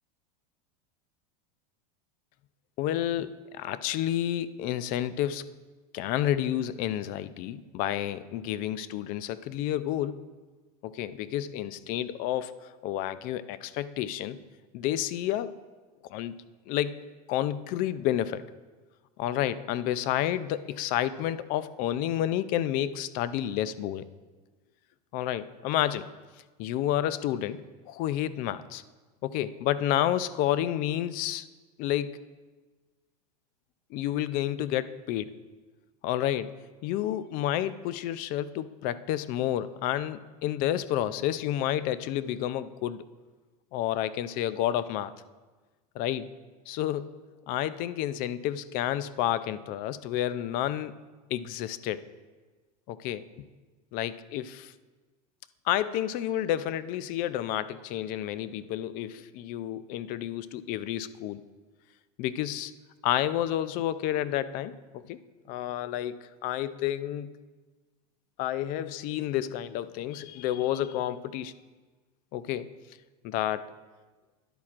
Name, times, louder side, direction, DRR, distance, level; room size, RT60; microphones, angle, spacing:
voice 1, 2.8-5.5 5.9-10.2 10.8-12.6 12.8-14.4 14.7-15.5 16.1-16.3 16.7-18.4 19.2-24.1 25.1-26.1 26.6-28.8 29.2-31.4 31.8-32.2 33.9-35.3 36.0-36.5 36.8-43.0 43.7-45.1 46.0-46.3 46.7-47.1 47.5-50.9 51.3-52.0 52.9-53.2 53.9-54.7 55.7-61.4 62.2-62.7 63.0-65.2 65.5-67.4 68.4-71.5 72.3-72.7 73.2-73.7, left 12 dB, 45° left, 15 dB, 0.4 m, -30 dB
11.0 x 8.5 x 2.5 m, 1.3 s
supercardioid pair, 120°, 20 cm